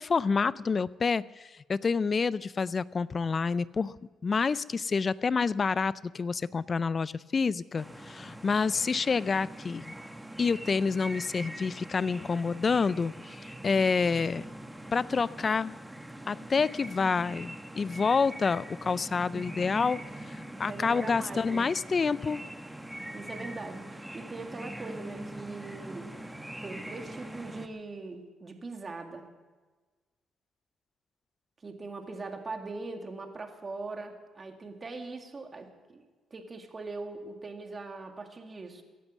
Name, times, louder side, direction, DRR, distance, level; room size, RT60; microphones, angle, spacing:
voice 1, 0.0-4.0 4.2-9.9 10.4-14.5 14.9-15.7 16.3-20.0 20.3-22.4, left 5 dB, 35° left, 19 dB, 0.4 m, -28 dB
sound 1, 7.8-27.7, right 1 dB, 5° right, 1.2 m, -43 dB
voice 2, 20.6-21.8 23.1-26.1 26.6-29.3 31.6-36.0 36.3-38.8, right 3 dB, 30° right, 4 dB, 2.1 m, -41 dB
16.5 x 11.0 x 7.3 m, 1.3 s
cardioid pair, 90°, 0 cm